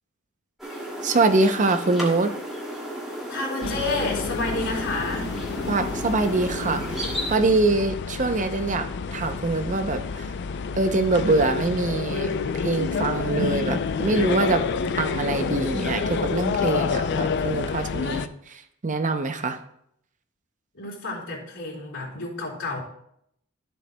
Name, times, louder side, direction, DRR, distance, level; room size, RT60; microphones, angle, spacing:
sound 1, 0.6-7.4, equal, ahead, 2.3 m, -33 dB
voice 1, 1.0-2.3 5.7-7.0 7.3-8.9 9.1-10.3 10.7-14.6 14.9-19.6, right 3 dB, 35° right, 8 dB, 0.6 m, -24 dB
voice 2, 3.1-5.3 20.7-22.8, left 2 dB, 70° left, -7 dB, 3.4 m, -30 dB
sound 2, 3.6-18.3, left 5 dB, 55° left, 0.4 m, -28 dB
13.0 x 7.9 x 2.2 m, 0.74 s
head